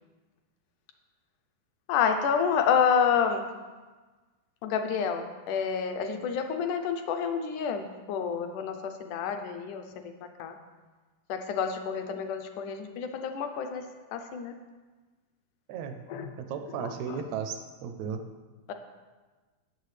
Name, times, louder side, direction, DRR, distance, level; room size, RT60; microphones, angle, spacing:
voice 1, 1.9-3.5 4.6-10.1 10.4-10.6 11.3-13.9 14.1-14.5 16.1-16.3 16.8-17.2 18.7-18.8, left 7 dB, 80° left, 7 dB, 1.9 m, -29 dB
voice 2, 15.7-16.0 16.4-18.2, right 7 dB, 85° right, 6 dB, 1.6 m, -35 dB
17.0 x 6.9 x 3.3 m, 1.3 s
omnidirectional pair, 4.1 m